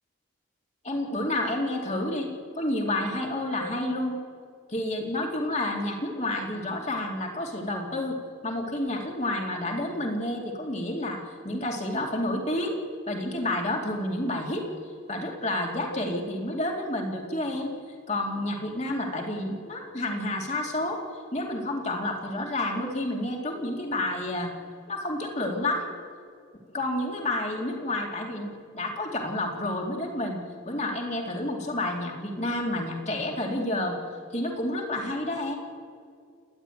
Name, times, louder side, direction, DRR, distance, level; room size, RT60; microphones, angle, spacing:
voice 1, 0.8-2.3 2.5-4.2 4.7-8.2 8.4-12.8 13.1-14.7 15.1-17.7 18.1-21.0 21.3-24.5 24.9-25.9 26.7-34.0 34.3-35.6, left 1 dB, 35° left, 1 dB, 2.6 m, -30 dB
29.5 x 11.0 x 9.1 m, 2.3 s
head